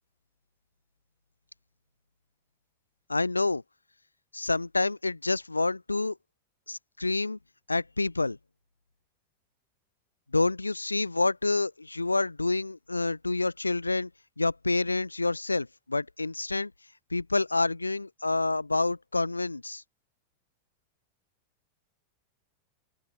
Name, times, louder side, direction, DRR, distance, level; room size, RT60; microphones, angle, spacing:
voice 1, 3.1-3.6 4.3-6.2 6.7-7.4 7.7-8.4 10.3-14.1 14.4-16.7 17.1-19.8, left 2 dB, 85° left, 0.9 m, -28 dB
open air
figure-of-eight pair, 90°, 0 cm